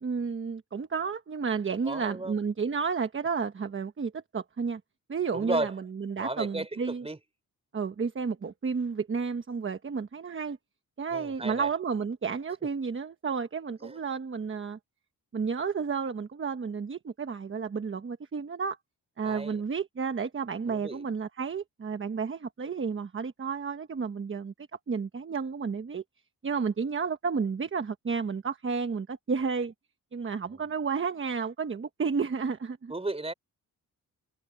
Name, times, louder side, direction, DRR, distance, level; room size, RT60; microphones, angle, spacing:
voice 1, 0.0-4.8 5.1-7.1 7.7-10.6 11.0-14.8 15.3-18.8 19.2-24.5 24.9-26.0 26.4-29.7 30.1-32.9, right 5 dB, 35° right, 1.1 m, -31 dB
voice 2, 1.8-2.4 5.3-5.7 6.2-7.2 11.1-11.7 13.8-14.0 19.2-19.6 20.7-21.0 30.4-30.6 32.9-33.3, right 2 dB, 15° right, 4.8 m, -34 dB
wide cardioid pair, 125°, 36 cm